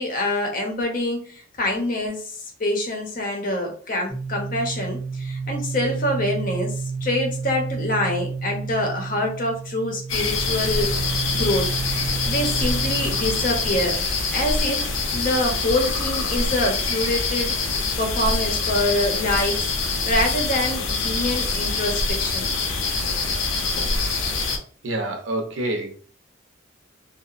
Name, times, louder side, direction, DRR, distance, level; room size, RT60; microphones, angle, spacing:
voice 1, 0.0-11.7 12.2-14.0 14.3-19.7 20.1-22.5, left 1 dB, 45° left, 2 dB, 0.7 m, -26 dB
sound 1, 4.1-13.9, right 5 dB, 5° right, 0.5 m, -31 dB
sound 2, 10.1-24.6, left 3 dB, 85° left, 0.5 m, -25 dB
voice 2, 24.8-26.0, right 1 dB, 75° right, 4 dB, 0.6 m, -27 dB
2.8 x 2.0 x 2.4 m, 0.44 s
head